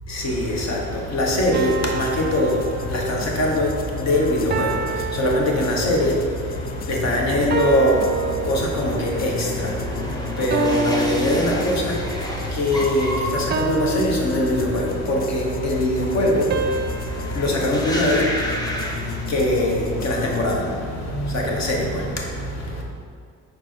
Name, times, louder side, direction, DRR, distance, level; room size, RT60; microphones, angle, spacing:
voice 1, 0.0-22.8, left 1 dB, 60° left, 1.4 m, -23 dB
sound 1, 1.4-20.6, left 7 dB, 30° left, 0.4 m, -35 dB
sound 2, 1.5-3.4 4.5-6.2 7.5-9.1 10.5-12.2 13.5-15.1 16.5-18.8, right 4 dB, 35° right, 0.4 m, -28 dB
sound 3, 6.7-19.8 20.1-20.7, equal, 15° left, 0.9 m, -32 dB
5.4 x 4.5 x 4.3 m
cardioid pair, 90°, 30 cm